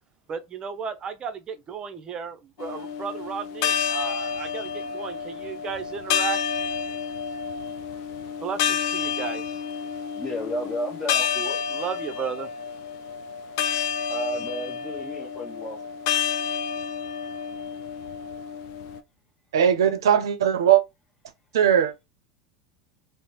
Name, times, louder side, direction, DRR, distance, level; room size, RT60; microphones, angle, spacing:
voice 1, 0.3-6.4 8.4-9.6 11.7-12.5, right 6 dB, 35° right, 0.6 m, -34 dB
sound 1, 2.6-19.0, left 7 dB, 60° left, 0.4 m, -30 dB
voice 2, 10.1-11.6 14.1-15.8, equal, 15° left, 1.0 m, -32 dB
voice 3, 19.5-20.8 21.5-21.9, right 9 dB, 75° right, 0.5 m, -19 dB
3.9 x 2.0 x 3.0 m
hypercardioid pair, 85°, 2 cm